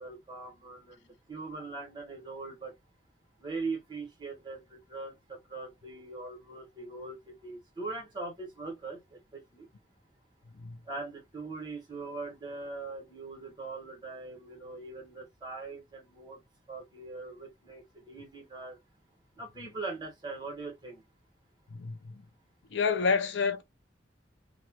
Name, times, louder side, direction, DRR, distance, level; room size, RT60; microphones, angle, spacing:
voice 1, 0.0-2.7 3.4-9.7 10.8-16.4 16.7-18.8 19.4-21.0, right 3 dB, 25° right, 1.6 m, -41 dB
voice 2, 21.7-22.2 22.7-23.6, left 5 dB, 80° left, 0.5 m, -29 dB
2.9 x 2.4 x 2.9 m
head